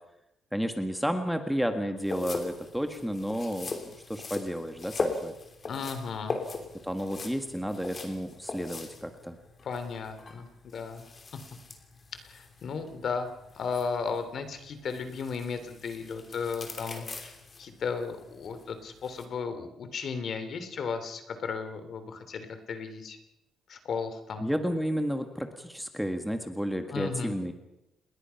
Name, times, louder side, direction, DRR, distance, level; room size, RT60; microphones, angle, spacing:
voice 1, 0.5-3.8 4.1-5.3 6.8-9.3 24.4-27.5, equal, ahead, 6 dB, 1.7 m, -31 dB
sound 1, 2.0-19.2, left 3 dB, 25° left, 3.2 m, -40 dB
voice 2, 5.7-6.4 9.6-11.0 11.3-11.4 12.2-13.3 13.5-17.3 17.6-23.2 23.7-24.5 26.9-27.3, left 5 dB, 50° left, 9 dB, 3.1 m, -35 dB
28.5 x 21.5 x 5.8 m, 0.87 s
cardioid pair, 155°, 0 cm